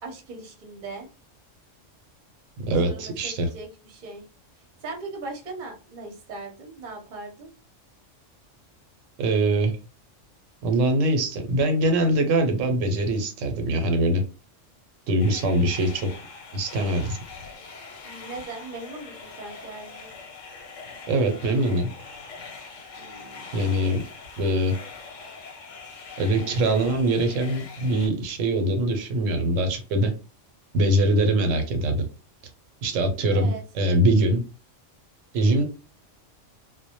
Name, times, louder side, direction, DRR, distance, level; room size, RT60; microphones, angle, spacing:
voice 1, 0.0-1.1 2.8-4.2 4.8-7.5 18.0-20.1 23.0-23.5 33.3-33.6, right 3 dB, 45° right, 2 dB, 0.7 m, -39 dB
voice 2, 2.7-3.5 9.2-9.7 10.6-14.2 15.1-16.1 16.5-17.2 21.1-21.9 23.5-24.0 24.4-24.8 26.2-30.1 30.7-32.0 32.8-34.4 35.3-35.6, right 1 dB, 85° right, 6 dB, 0.9 m, -23 dB
sound 1, 15.2-28.1, left 4 dB, 85° left, 1.0 m, -43 dB
2.1 x 2.1 x 2.8 m, 0.33 s
omnidirectional pair, 1.3 m